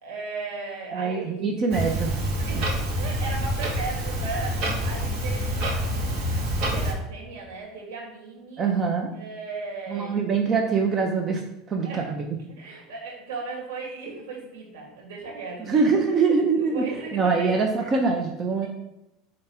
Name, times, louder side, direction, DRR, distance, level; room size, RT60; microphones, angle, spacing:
voice 1, 0.0-1.6 2.4-2.7 3.0-6.3 6.7-8.7 9.1-10.2 11.8-12.1 12.6-16.2 16.5-17.9, right 4 dB, 90° right, -1 dB, 2.6 m, -37 dB
voice 2, 0.9-2.6 8.6-9.1 9.9-11.4 11.7-12.3 15.6-16.8 17.1-18.7, right 4 dB, 30° right, 3 dB, 0.8 m, -24 dB
Clock, 1.7-6.9, equal, 55° right, 2.3 m, -27 dB
5.8 x 3.9 x 5.7 m, 0.87 s
supercardioid pair, 130°, 0 cm